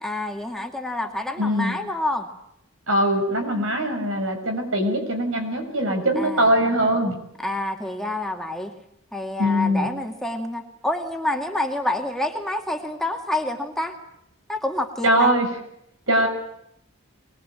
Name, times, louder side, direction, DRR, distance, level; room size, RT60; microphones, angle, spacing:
voice 1, 0.0-2.3 6.2-6.5 7.4-8.7 9.1-13.9 14.5-15.3, left 1 dB, ahead, 2 dB, 2.1 m, -28 dB
voice 2, 1.4-1.8 2.9-7.1 9.4-9.9 15.0-15.5 16.1-16.3, equal, 80° right, 4 dB, 6.6 m, -21 dB
24.0 x 21.0 x 9.0 m, 0.76 s
head